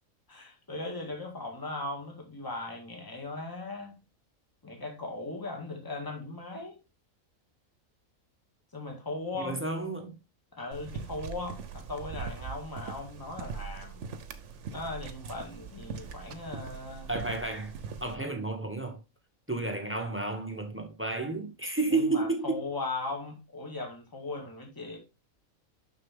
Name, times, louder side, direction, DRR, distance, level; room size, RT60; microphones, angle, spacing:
voice 1, 0.3-4.0 4.6-6.8 8.7-9.6 10.5-14.0 14.7-17.1 21.9-25.0, left 2 dB, 15° left, 1.7 m, -38 dB
voice 2, 9.4-10.2 17.1-17.7 18.0-19.0 19.5-22.6, right 3 dB, 10° right, 1.1 m, -31 dB
sound 1, 10.7-18.2, right 5 dB, 65° right, 1.1 m, -41 dB
6.5 x 6.2 x 3.6 m
omnidirectional pair, 1.4 m